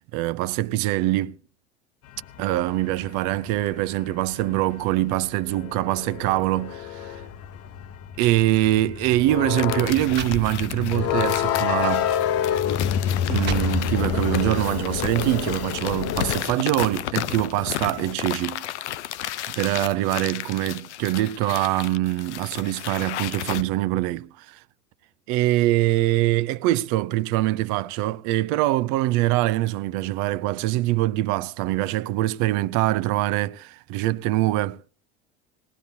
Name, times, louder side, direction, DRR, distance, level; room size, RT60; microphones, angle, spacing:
voice 1, 0.1-1.4 2.4-7.1 8.2-12.1 13.3-18.6 19.5-24.6 25.3-34.8, right 16 dB, 60° right, 0.7 m, -24 dB
sound 1, 2.1-16.4, left 9 dB, 45° left, 0.9 m, -28 dB
sound 2, 8.8-9.0 9.7-9.8 10.1-11.0 11.5-11.7 12.5-12.6 13.1-14.2, right 6 dB, 30° right, 1.5 m, -36 dB
sound 3, 9.5-23.6, left 13 dB, 90° left, 0.6 m, -33 dB
20.5 x 16.5 x 2.8 m
hypercardioid pair, 85°, 34 cm